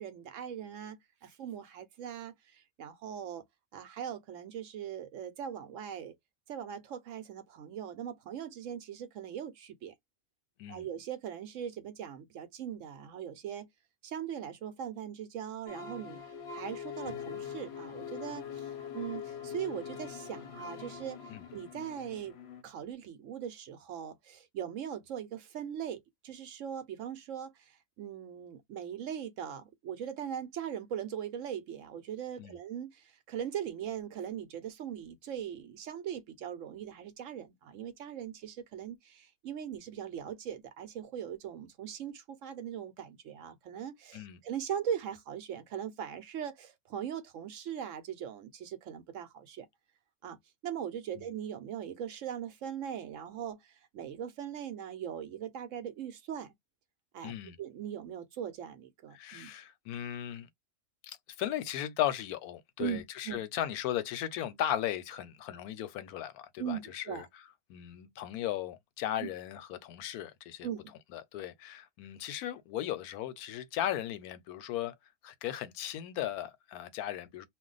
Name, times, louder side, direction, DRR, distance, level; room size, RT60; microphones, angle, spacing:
voice 1, 0.0-3.4 3.7-6.1 6.5-9.9 10.7-13.7 14.0-16.2 16.5-21.2 21.5-22.3 22.6-49.7 50.2-56.5 57.1-59.5 62.8-63.0 63.3-63.4 66.6-67.3 69.2-69.3 70.6-70.8, right 9 dB, 70° right, 0.9 m, -40 dB
sound 1, 15.7-22.6, left 7 dB, 55° left, 0.8 m, -43 dB
voice 2, 57.2-57.6 59.1-60.5 61.0-67.3 67.7-70.7 71.1-74.9 75.2-77.5, left 11 dB, 90° left, 1.1 m, -36 dB
2.5 x 2.2 x 3.8 m
omnidirectional pair, 1.5 m